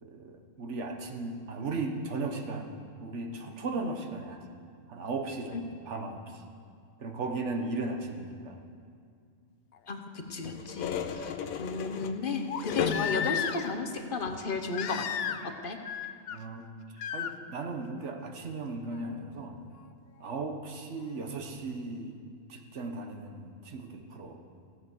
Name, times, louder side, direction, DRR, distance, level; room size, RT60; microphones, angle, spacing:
voice 1, 0.0-2.7 3.0-4.4 4.9-6.4 7.0-8.6 10.3-10.5 10.9-11.1 16.3-16.7 17.1-19.6 20.2-22.2 22.5-24.4, right 3 dB, 60° right, 4 dB, 1.3 m, -36 dB
Crying sobbing, 9.8-9.9 12.5-13.8 14.7-15.6 15.8-16.4 17.0-17.3 18.9-19.0, left 8 dB, 65° left, 0.6 m, -34 dB
voice 2, 9.9-11.3 11.6-15.0 15.6-15.8, left 4 dB, 45° left, 5 dB, 1.0 m, -34 dB
sound 1, 10.4-13.5 14.2-14.6 15.3-15.4, left 7 dB, 85° left, 1.1 m, -35 dB
16.0 x 7.9 x 6.2 m, 2.3 s
omnidirectional pair, 1.4 m